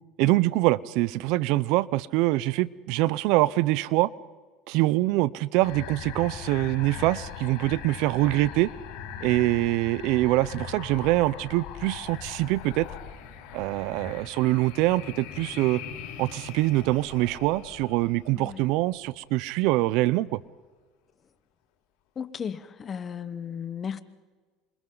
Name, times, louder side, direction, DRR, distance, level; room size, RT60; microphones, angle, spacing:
voice 1, 0.2-4.1 4.7-8.7 9.2-12.9 13.5-15.8 16.2-20.4, right 18 dB, 70° right, 0.6 m, -24 dB
sound 1, 5.6-19.2, left 8 dB, 75° left, 4.8 m, -41 dB
voice 2, 18.3-18.7 22.2-24.0, left 7 dB, 30° left, 1.1 m, -35 dB
28.0 x 26.0 x 3.9 m
supercardioid pair, 115°, 0 cm